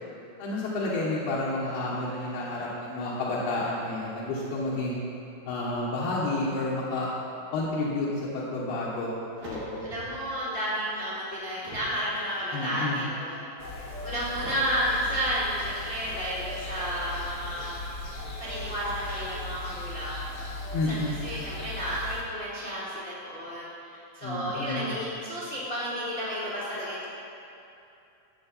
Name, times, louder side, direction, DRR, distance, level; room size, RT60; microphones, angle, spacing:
voice 1, 0.4-5.0 5.5-7.1 7.5-8.1 8.3-9.1 9.4-9.9 12.5-13.0 20.7-21.2 24.2-24.9, left 2 dB, 90° left, -7 dB, 3.2 m, -30 dB
sound 1, 9.3-10.3 10.6-12.0 12.6-13.1 14.3-14.5, equal, 75° right, 4.0 m, -44 dB
voice 2, 9.8-13.4 14.0-17.9 18.4-20.2 20.7-27.1, equal, 45° left, -9 dB, 0.7 m, -32 dB
sound 2, 13.6-22.2, left 2 dB, 60° left, 1.0 m, -38 dB
14.0 x 8.0 x 4.1 m, 2.7 s
omnidirectional pair, 4.4 m